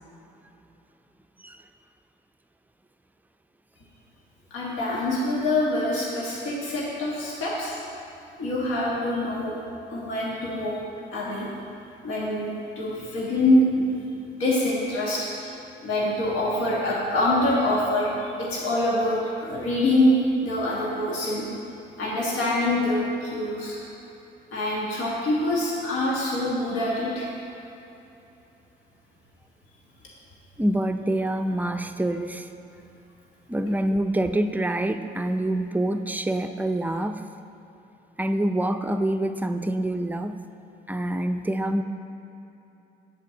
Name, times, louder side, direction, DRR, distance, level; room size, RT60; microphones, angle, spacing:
voice 1, 4.5-7.7 8.4-9.5 9.9-10.8 11.1-11.5 12.0-13.8 14.3-15.3 15.8-21.5 22.0-23.8 24.5-27.3, left 1 dB, 85° left, -5 dB, 1.4 m, -25 dB
voice 2, 30.6-32.5 33.5-37.2 38.2-40.3 40.9-41.8, right 1 dB, 10° right, 7 dB, 0.4 m, -26 dB
8.3 x 4.4 x 7.0 m, 2.9 s
cardioid pair, 90°, 20 cm